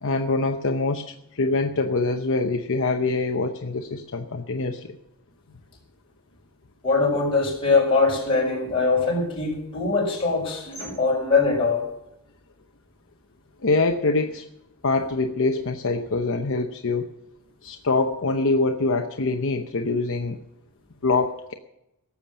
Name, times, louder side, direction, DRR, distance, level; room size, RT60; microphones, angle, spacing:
voice 1, 0.0-4.9 13.6-14.5 14.8-17.1 17.6-20.4 21.0-21.5, left 3 dB, 60° left, 4 dB, 0.9 m, -24 dB
voice 2, 6.8-11.9, left 4 dB, 25° left, -3 dB, 5.3 m, -22 dB
18.0 x 7.2 x 7.4 m, 0.85 s
head